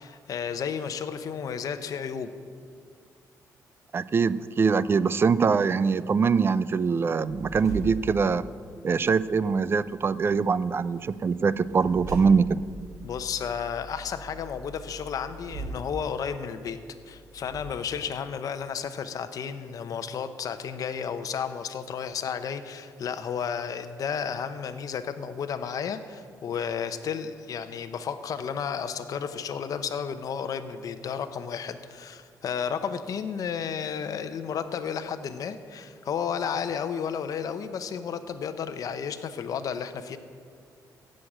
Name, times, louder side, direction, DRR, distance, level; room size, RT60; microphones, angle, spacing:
voice 1, 0.0-2.3 13.0-16.8 17.1-40.2, left 7 dB, 60° left, 9 dB, 0.9 m, -32 dB
voice 2, 3.9-8.4 8.8-12.6, right 5 dB, 35° right, 17 dB, 0.4 m, -23 dB
sound 1, 7.2-17.6, right 2 dB, 55° right, 4.0 m, -42 dB
15.5 x 6.5 x 8.8 m, 2.1 s
cardioid pair, 120°, 7 cm